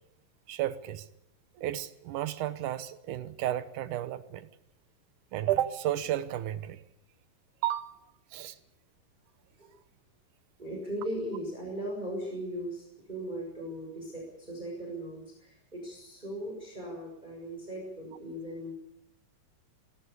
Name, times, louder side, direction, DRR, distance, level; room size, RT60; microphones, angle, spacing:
voice 1, 0.5-1.1 1.6-4.5 5.3-6.8 7.6-8.0 8.3-8.6, right 12 dB, 70° right, 2.3 m, -32 dB
voice 2, 10.6-18.7, right 1 dB, 10° right, 6.2 m, -38 dB
20.0 x 18.0 x 8.4 m
omnidirectional pair, 4.0 m